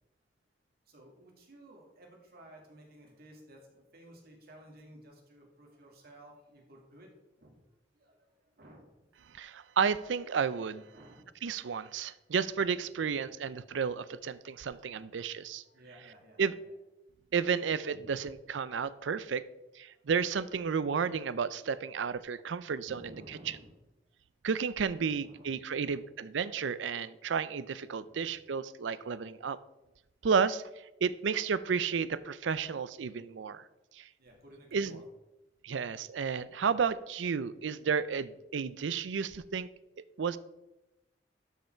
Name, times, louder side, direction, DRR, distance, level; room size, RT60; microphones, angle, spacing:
voice 1, 0.9-7.1 7.4-7.6 7.9-9.1 10.9-11.3 14.9-15.2 15.6-16.7 17.9-18.3 22.8-23.8 25.1-26.1 27.9-28.3 33.7-33.8 34.2-35.0, right 1 dB, 55° right, 0 dB, 2.1 m, -55 dB
voice 2, 9.3-10.8 11.4-15.6 16.4-16.5 17.3-19.4 19.8-23.0 24.4-29.6 30.2-30.6 31.0-33.6 33.9-34.1 34.7-35.0 35.6-39.7 40.2-40.4, right 6 dB, 85° right, 16 dB, 0.5 m, -32 dB
12.5 x 5.6 x 4.4 m, 0.97 s
head